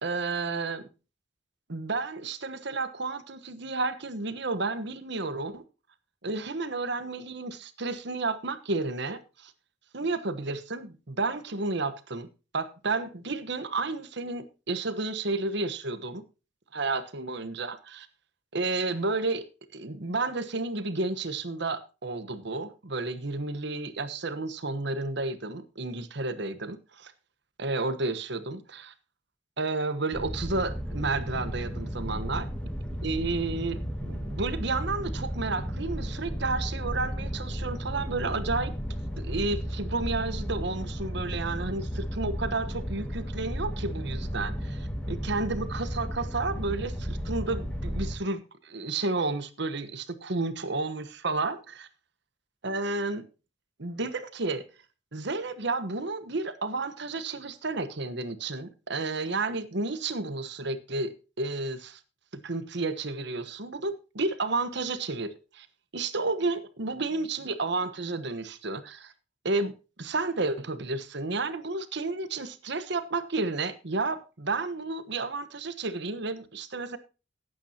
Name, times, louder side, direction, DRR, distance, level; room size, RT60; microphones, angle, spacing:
voice 1, 0.0-0.8 1.7-5.6 6.2-9.5 9.9-12.3 12.5-16.2 16.7-18.1 18.5-19.4 19.7-27.1 27.6-28.9 29.6-32.5 33.0-38.7 39.2-51.9 52.6-53.2 53.8-54.6 55.1-62.0 62.4-65.7 65.9-69.1 69.4-77.0, right 3 dB, 65° right, 1.2 m, -31 dB
sound 1, 30.1-48.2, equal, 5° left, 2.0 m, -34 dB
17.5 x 9.2 x 2.9 m
head